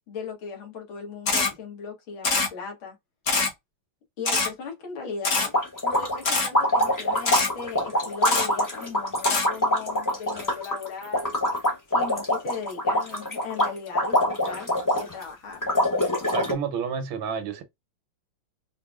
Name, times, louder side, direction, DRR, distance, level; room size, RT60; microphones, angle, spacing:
voice 1, 0.1-3.0 4.2-5.5 5.8-11.3 11.9-15.6, left 5 dB, 80° left, 2.1 m, -38 dB
Camera, 1.3-1.5 2.2-2.5 3.3-3.5 4.3-4.5 5.2-5.5 6.3-6.5 7.3-7.5 8.2-8.5 9.2-9.5, left 3 dB, 45° left, 1.2 m, -23 dB
sound 1, 5.4-15.2 15.6-16.5, left 1 dB, 25° left, 0.4 m, -24 dB
voice 2, 16.3-17.6, right 7 dB, 80° right, 1.5 m, -29 dB
4.6 x 2.6 x 2.3 m
omnidirectional pair, 2.2 m